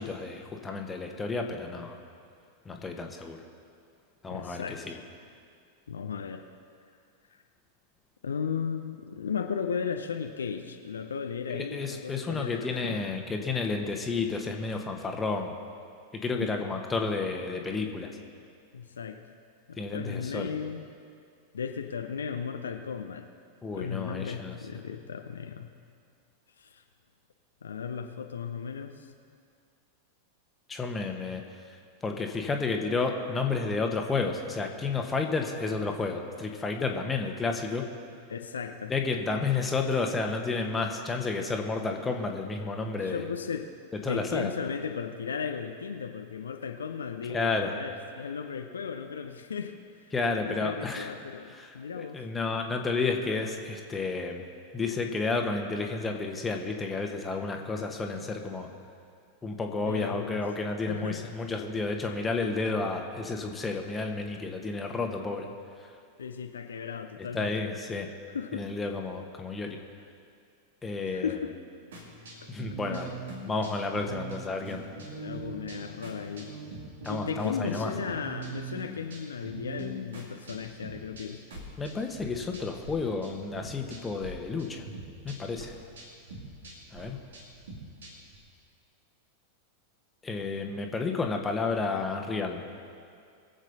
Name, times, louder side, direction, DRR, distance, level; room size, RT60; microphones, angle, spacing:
voice 1, 0.0-2.0 2.6-3.4 4.2-5.0 11.5-15.5 16.1-18.1 19.8-20.5 23.6-24.6 30.7-37.9 38.9-43.3 44.0-44.5 47.3-47.7 50.1-51.1 51.5-54.5 54.7-58.7 59.4-65.5 65.8-65.9 67.2-68.1 68.5-69.8 70.8-71.4 72.5-73.1 73.5-74.9 77.0-77.9 81.8-84.9 85.2-85.8 86.9-87.2 90.2-92.7, left 4 dB, 15° left, 3 dB, 1.4 m, -31 dB
voice 2, 4.3-5.0 5.9-6.4 7.3-7.4 8.2-13.1 16.4-16.7 18.7-19.2 19.7-20.9 21.5-23.3 23.7-25.7 26.6-26.8 27.6-29.1 38.3-38.9 43.0-43.7 44.1-50.0 50.4-52.2 59.8-60.4 60.9-61.2 66.2-67.5 68.3-68.7 71.1-71.5 72.4-72.5 72.9-73.1 75.1-76.5 77.1-81.4, left 6 dB, 70° left, 6 dB, 0.7 m, -36 dB
sound 1, 71.9-82.9 83.2-84.3 84.6-88.4, right 2 dB, 65° right, 2.6 m, -42 dB
22.0 x 8.0 x 4.1 m, 2.3 s
figure-of-eight pair, 90°, 0 cm